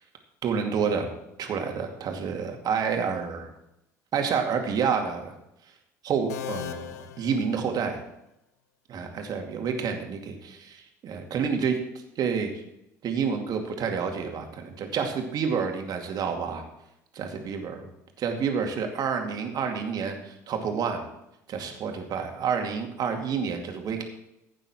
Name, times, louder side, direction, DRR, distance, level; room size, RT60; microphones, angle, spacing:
voice 1, 0.4-1.1 1.4-3.5 4.1-5.3 6.0-8.0 8.9-11.8 12.2-12.5 13.0-16.6 17.1-17.7 18.2-21.0 21.5-24.0, right 6 dB, 45° right, 3 dB, 2.4 m, -29 dB
sound 1, 6.3-8.2, left 10 dB, 75° left, 0.8 m, -39 dB
15.0 x 9.0 x 4.4 m, 0.84 s
figure-of-eight pair, 60°, 9 cm